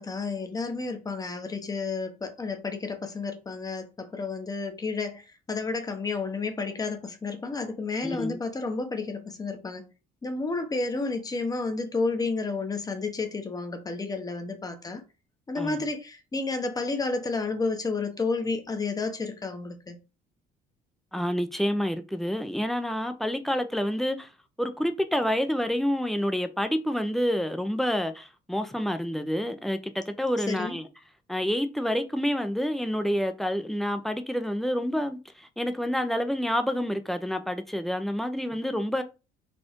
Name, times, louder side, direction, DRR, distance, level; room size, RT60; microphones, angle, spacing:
voice 1, 0.0-9.8 10.2-15.0 15.5-20.0 30.5-30.8, left 3 dB, 20° left, 0.9 m, -31 dB
voice 2, 8.0-8.4 15.5-15.8 21.1-24.3 24.6-30.9 31.3-39.0, equal, ahead, 0.6 m, -28 dB
4.3 x 2.5 x 4.4 m
cardioid pair, 110°, 17 cm